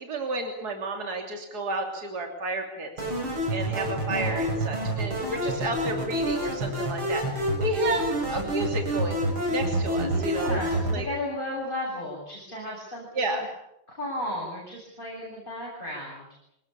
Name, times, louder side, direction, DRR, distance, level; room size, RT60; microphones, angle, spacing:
voice 1, 0.0-2.9 3.5-9.2 9.5-10.6 10.9-11.1 13.2-13.4, right 2 dB, 50° right, 3 dB, 3.6 m, -31 dB
sound 1, 3.0-11.0, right 1 dB, 80° right, 7.2 m, -28 dB
voice 2, 4.1-4.9 10.0-13.4 13.9-16.2, left 1 dB, 25° left, -4 dB, 7.9 m, -34 dB
26.0 x 20.0 x 8.7 m, 0.79 s
omnidirectional pair, 2.2 m